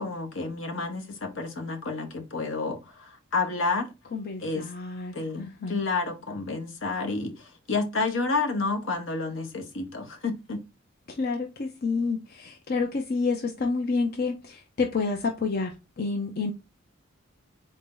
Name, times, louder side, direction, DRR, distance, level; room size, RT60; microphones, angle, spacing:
voice 1, 0.0-3.9 4.4-4.7 5.1-10.6, left 3 dB, 70° left, 0.9 m, -30 dB
voice 2, 4.1-5.8 11.1-15.7 16.0-16.5, left 4 dB, 50° left, 0.5 m, -29 dB
4.0 x 2.7 x 3.7 m
head